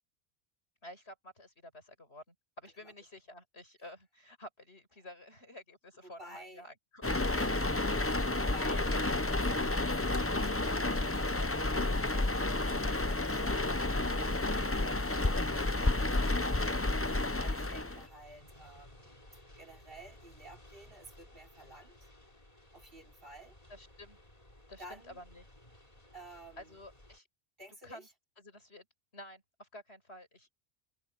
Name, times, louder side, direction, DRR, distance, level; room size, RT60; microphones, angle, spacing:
voice 1, 0.8-7.2 23.7-24.2 24.7-25.4 26.6-27.3 27.8-28.1 28.4-28.9 29.1-30.5, left 1 dB, 70° left, 7.5 m, -51 dB
voice 2, 6.0-6.6 7.3-11.8 12.0-22.1 22.7-23.5 24.8-25.2 26.1-26.8 27.6-28.1, right 1 dB, 55° right, 4.5 m, -53 dB
sound 1, 7.0-18.1, left 2 dB, 15° left, 0.7 m, -31 dB
sound 2, 15.4-27.2, left 1 dB, 35° left, 3.7 m, -57 dB
omnidirectional pair, 1.1 m